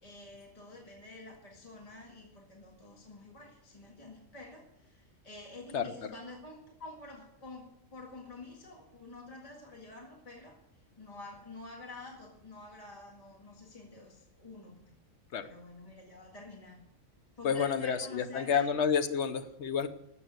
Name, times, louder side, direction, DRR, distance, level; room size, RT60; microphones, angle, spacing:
voice 1, 0.0-10.6 11.0-14.9 15.4-16.8 17.4-18.7, left 2 dB, 25° left, 0 dB, 2.0 m, -49 dB
voice 2, 17.4-19.9, left 7 dB, 60° left, 10 dB, 1.1 m, -29 dB
12.5 x 7.6 x 8.1 m, 0.81 s
omnidirectional pair, 1.4 m